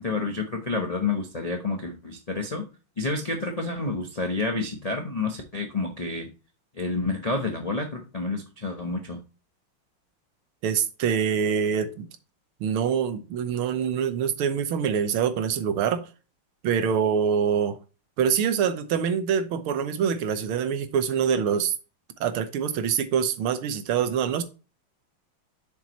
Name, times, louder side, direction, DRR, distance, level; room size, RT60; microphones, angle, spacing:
voice 1, 0.0-2.7 3.0-6.3 6.8-9.2, left 3 dB, 60° left, 0.4 m, -29 dB
voice 2, 10.6-12.1 12.6-16.1 16.6-17.8 18.2-21.7 22.2-24.4, right 7 dB, 85° right, 1.7 m, -25 dB
7.5 x 5.8 x 3.0 m
omnidirectional pair, 2.3 m